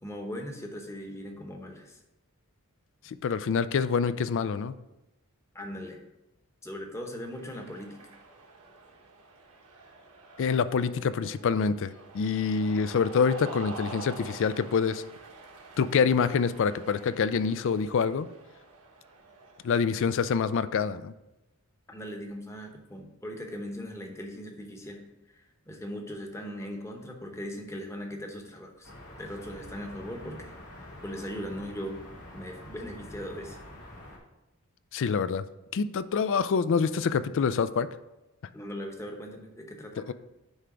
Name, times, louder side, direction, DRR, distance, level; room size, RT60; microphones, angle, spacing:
voice 1, 0.0-2.0 5.5-6.0 6.6-8.0 21.9-28.9 29.2-30.5 31.0-32.0 32.3-33.6 38.5-40.0, equal, 15° left, 2 dB, 0.9 m, -39 dB
voice 2, 3.1-4.8 10.4-15.0 15.8-18.3 19.6-21.1 34.9-35.4 35.7-37.9 40.0-40.1, left 6 dB, 55° left, 14 dB, 0.4 m, -26 dB
Cheering, 7.2-20.7, right 3 dB, 85° right, 1.3 m, -48 dB
sound 1, 28.8-34.2, left 1 dB, 80° left, 2.3 m, -46 dB
9.7 x 3.4 x 4.9 m, 0.95 s
head